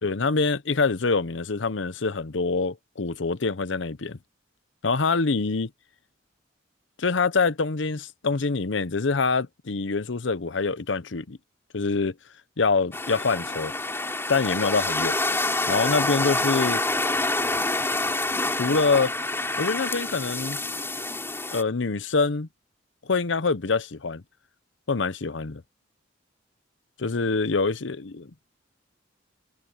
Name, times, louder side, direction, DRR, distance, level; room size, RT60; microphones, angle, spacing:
voice 1, 0.0-4.2 4.8-5.7 7.0-11.4 11.7-12.1 12.6-13.7 14.3-15.1 15.7-16.8 18.6-19.1 19.6-20.6 21.5-22.5 23.1-24.2 24.9-25.6 27.0-28.2, left 4 dB, 80° left, 0.8 m, -25 dB
sound 1, 12.9-21.6, left 2 dB, 15° left, 3.5 m, -27 dB
head